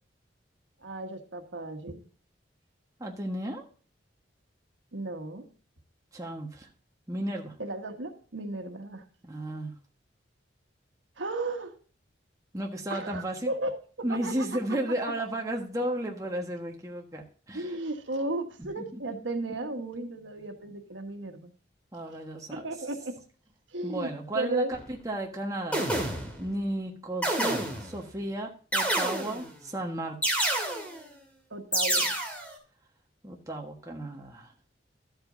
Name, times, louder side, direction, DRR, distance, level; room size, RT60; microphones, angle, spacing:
voice 1, 0.8-2.0 4.9-5.5 7.6-9.0 11.2-11.7 12.9-14.8 17.5-21.5 22.1-22.2 22.5-23.2 23.7-24.8 31.5-32.1, right 2 dB, 85° right, 5 dB, 1.4 m, -35 dB
voice 2, 3.0-3.6 6.1-6.7 7.1-7.5 9.2-9.7 12.5-13.5 14.0-17.7 18.6-19.0 21.9-22.6 23.8-25.8 26.4-30.4 33.2-34.5, right 1 dB, 20° right, 0 dB, 1.3 m, -34 dB
sound 1, 24.7-24.9 25.7-26.5 27.2-28.0 28.7-29.6 30.2-31.0 31.7-32.5, right 1 dB, 5° left, 2.2 m, -28 dB
12.5 x 8.0 x 2.6 m, 0.41 s
head